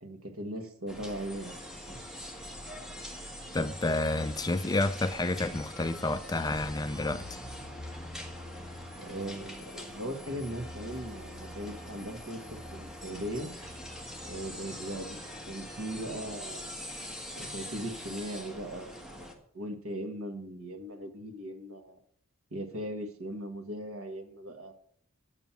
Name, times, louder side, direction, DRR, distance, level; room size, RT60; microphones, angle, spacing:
voice 1, 0.0-2.0 9.0-13.5 14.2-16.8 17.4-22.0 22.5-24.7, right 1 dB, 80° right, 1.6 m, -39 dB
sound 1, 0.9-19.3, equal, ahead, 1.3 m, -43 dB
voice 2, 3.5-7.4, left 2 dB, 20° left, 0.3 m, -30 dB
9.1 x 7.2 x 5.9 m
head